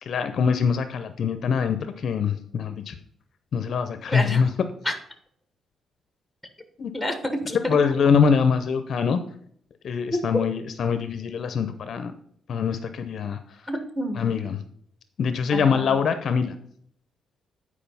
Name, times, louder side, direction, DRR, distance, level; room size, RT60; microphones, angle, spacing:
voice 1, 0.0-3.0 3.5-4.5 6.8-6.9 7.7-9.2 9.8-12.1 12.5-13.4 14.2-14.6 15.2-16.6, left 6 dB, 45° left, 9 dB, 0.6 m, -23 dB
voice 2, 4.1-4.4 4.8-4.9 6.9-7.7 10.1-10.4 13.7-14.3 15.5-16.0, left 1 dB, ahead, 6 dB, 1.2 m, -28 dB
9.0 x 4.9 x 5.5 m, 0.63 s
cardioid pair, 180°, 0 cm